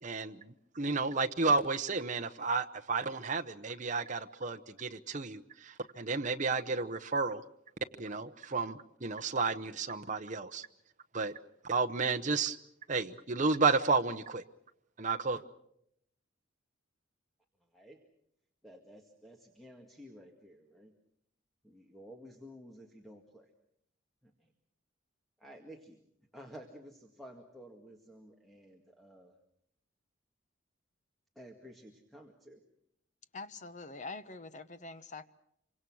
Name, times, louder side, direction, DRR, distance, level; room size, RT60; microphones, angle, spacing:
voice 1, 0.0-7.4 8.0-10.7 11.1-11.3 11.6-12.6 12.9-14.4 15.0-15.4, right 4 dB, 40° right, 7 dB, 0.9 m, -32 dB
voice 2, 17.6-18.0 18.6-20.9 21.6-23.5 24.2-24.5 25.4-26.0 26.3-29.4 31.4-32.6, equal, ahead, 2 dB, 2.0 m, -53 dB
voice 3, 33.3-35.3, left 3 dB, 40° left, 12 dB, 1.1 m, -44 dB
27.0 x 25.0 x 6.3 m, 0.75 s
head